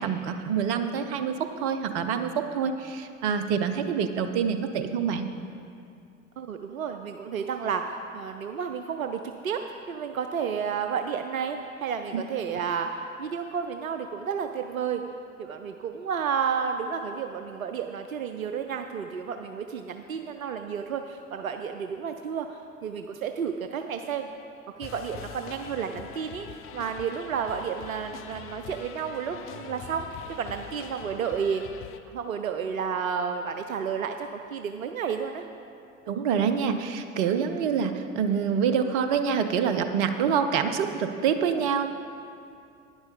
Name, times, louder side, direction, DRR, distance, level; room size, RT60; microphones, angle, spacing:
voice 1, 0.0-5.3 12.1-12.2 36.1-41.9, right 7 dB, 55° right, 9 dB, 0.8 m, -26 dB
voice 2, 6.4-9.6 9.9-15.0 15.4-24.3 24.8-26.5 26.7-30.1 30.4-31.6 32.1-35.4 41.4-41.5, right 7 dB, 85° right, 6 dB, 0.5 m, -31 dB
sound 1, 24.8-32.0, left 9 dB, 35° left, 0.5 m, -43 dB
11.0 x 9.8 x 4.0 m, 2.5 s
figure-of-eight pair, 70°, 40 cm